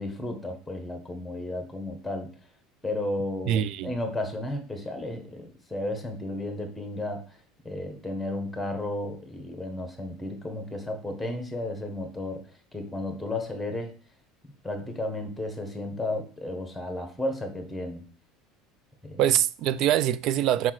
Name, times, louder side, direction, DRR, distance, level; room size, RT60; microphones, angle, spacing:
voice 1, 0.0-2.3 2.8-7.4 7.6-12.4 12.7-13.9 14.6-18.1 19.0-19.2, left 1 dB, 5° left, 1.3 m, -33 dB
voice 2, 3.5-3.9 19.2-20.7, right 11 dB, 50° right, 0.4 m, -24 dB
4.8 x 4.5 x 6.0 m
cardioid pair, 150°, 0 cm